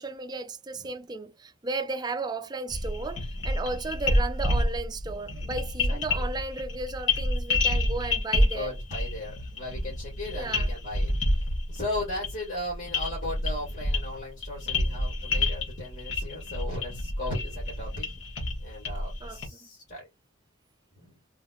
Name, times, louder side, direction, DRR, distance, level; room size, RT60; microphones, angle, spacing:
voice 1, 0.0-8.7 10.3-10.7 19.2-19.4, right 3 dB, 20° right, 0.4 m, -34 dB
sound 1, 2.7-19.5, left 1 dB, 65° left, 1.5 m, -29 dB
voice 2, 5.9-6.2 8.5-11.1 11.7-18.1 18.6-20.1 21.0-21.2, left 2 dB, 45° left, 1.7 m, -37 dB
3.7 x 3.0 x 2.3 m
head